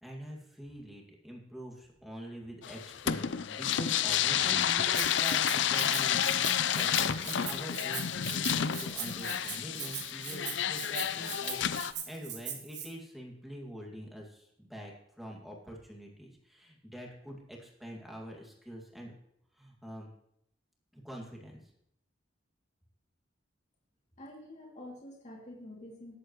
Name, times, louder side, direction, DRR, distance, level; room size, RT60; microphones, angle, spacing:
voice 1, 0.0-19.1 19.5-20.1 20.9-21.7, equal, ahead, -1 dB, 2.2 m, -45 dB
sound 1, 2.6-11.9, left 9 dB, 70° left, 0.5 m, -30 dB
Rattle (instrument), 4.9-12.9, right 9 dB, 60° right, 1.6 m, -40 dB
voice 2, 24.2-26.2, left 1 dB, 40° left, -2 dB, 2.7 m, -47 dB
19.5 x 8.2 x 3.1 m, 0.73 s
head